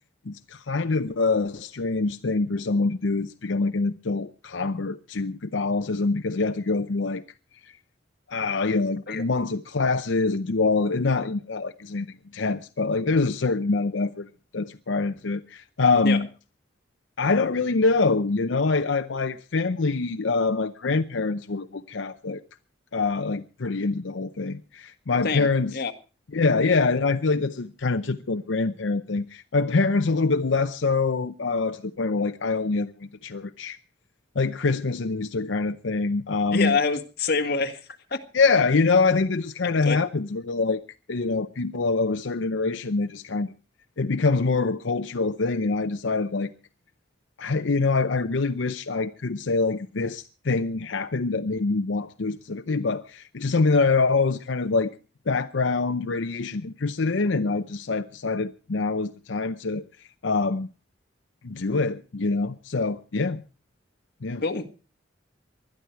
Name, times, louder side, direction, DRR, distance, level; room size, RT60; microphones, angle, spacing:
voice 1, 0.3-7.2 8.3-16.3 17.2-22.4 22.9-25.7 26.3-33.8 34.4-36.8 38.3-40.8 41.1-43.5 44.0-46.5 47.4-54.9 55.3-59.8 60.2-60.7 61.4-63.4 64.2-64.4, left 3 dB, 85° left, 0.7 m, -25 dB
voice 2, 25.2-25.9 36.5-37.8 38.1-38.2 39.9-40.0 64.4-64.7, left 4 dB, 55° left, 1.8 m, -26 dB
20.5 x 12.0 x 4.6 m
head